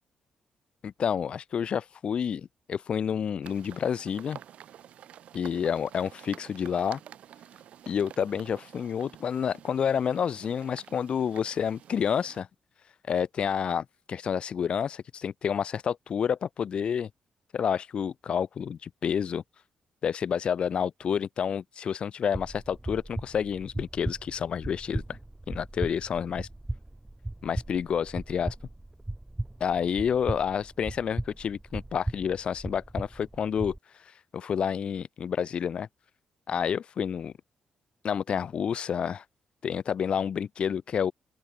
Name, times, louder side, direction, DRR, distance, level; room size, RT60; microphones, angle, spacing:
voice 1, 0.8-4.4 5.3-7.0 7.9-12.5 13.1-17.1 17.5-19.4 20.0-25.2 25.5-26.5 27.4-28.5 29.6-33.8 34.3-35.9 36.5-37.3 38.0-39.2 39.6-41.1, left 7 dB, 55° left, 1.4 m, -29 dB
sound 1, 3.4-12.4, right 10 dB, 75° right, 2.4 m, -50 dB
sound 2, 22.3-33.8, right 1 dB, 10° right, 0.4 m, -37 dB
open air
cardioid pair, 120°, 2 cm